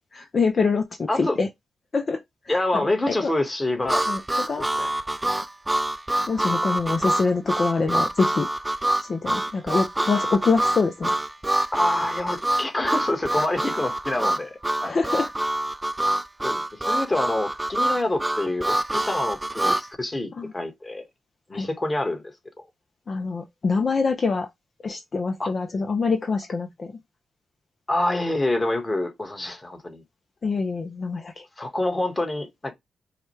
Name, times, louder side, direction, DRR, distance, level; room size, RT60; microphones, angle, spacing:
voice 1, 0.1-1.5 1.9-2.2 2.7-3.3 4.1-4.2 4.5-4.7 6.3-8.5 9.0-11.2 14.8-15.3 20.4-20.5 21.5-21.7 23.1-24.5 24.8-26.9 30.4-31.5, left 4 dB, 50° left, 0.5 m, -25 dB
voice 2, 2.5-4.0 4.6-4.9 7.0-7.1 7.9-8.0 11.7-14.9 16.4-16.6 16.9-21.0 21.5-22.2 25.4-25.5 27.9-30.0 31.6-32.7, left 2 dB, 25° left, 1.3 m, -27 dB
Harmonica, 3.9-19.9, right 1 dB, 15° right, 0.4 m, -26 dB
4.8 x 2.2 x 3.1 m
cardioid pair, 70°, 0 cm